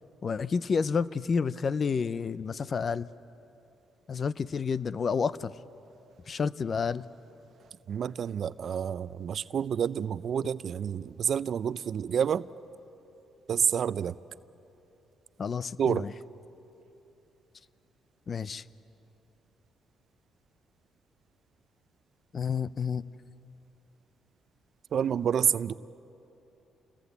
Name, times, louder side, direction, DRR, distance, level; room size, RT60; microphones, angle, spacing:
voice 1, 0.2-3.1 4.1-5.5 6.3-7.1 15.4-16.1 18.3-18.6 22.3-23.0, left 5 dB, 45° left, 17 dB, 0.6 m, -30 dB
voice 2, 7.9-12.5 13.5-14.1 15.8-16.1 24.9-25.7, right 8 dB, 60° right, 17 dB, 0.5 m, -28 dB
28.5 x 20.5 x 8.3 m, 2.9 s
cardioid pair, 90°, 0 cm